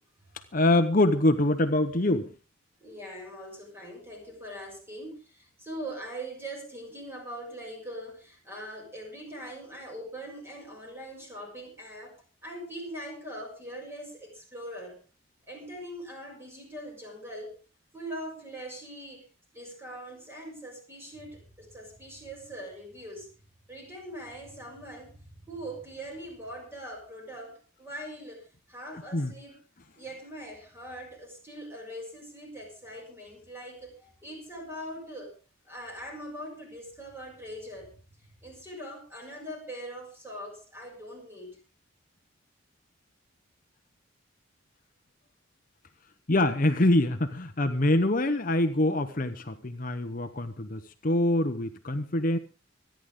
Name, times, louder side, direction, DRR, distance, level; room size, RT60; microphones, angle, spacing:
voice 1, 0.5-2.3 29.1-29.3 46.3-52.4, left 1 dB, 40° left, 9 dB, 0.9 m, -25 dB
voice 2, 2.8-12.1 12.4-15.0 15.5-17.5 17.9-19.3 19.5-23.3 23.7-29.6 30.0-35.3 35.7-38.0 38.4-41.6, right 1 dB, 10° right, 0 dB, 6.7 m, -42 dB
25.5 x 10.5 x 3.7 m, 0.34 s
head